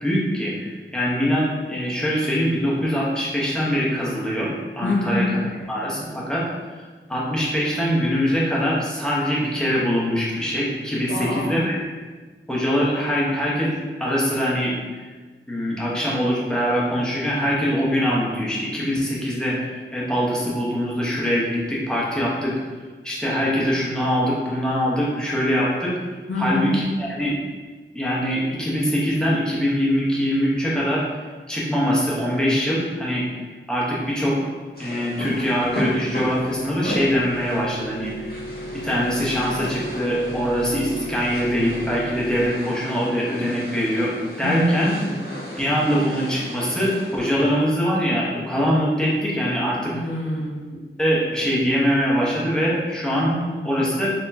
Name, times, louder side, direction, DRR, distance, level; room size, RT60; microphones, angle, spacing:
voice 1, 0.0-4.5 4.8-5.2 5.7-6.5 7.1-11.8 12.5-13.7 14.0-14.7 15.0-15.1 15.5-22.5 23.0-25.9 26.4-27.3 27.9-31.0 31.5-33.2 33.7-34.5 34.8-38.3 38.8-44.9 45.6-49.9 51.0-53.3 53.6-54.1, equal, 5° left, -6 dB, 1.0 m, -23 dB
voice 2, 4.8-5.4 11.1-11.7 26.3-26.8 44.4-45.2 49.9-50.6 53.3-53.9, left 1 dB, 65° left, -4 dB, 0.8 m, -25 dB
sound 1, 34.7-47.6, left 1 dB, 45° left, 1.3 m, -35 dB
sound 2, 35.2-42.5, equal, 75° right, 1.0 m, -35 dB
4.2 x 2.9 x 2.7 m, 1.4 s
wide cardioid pair, 55°, 21 cm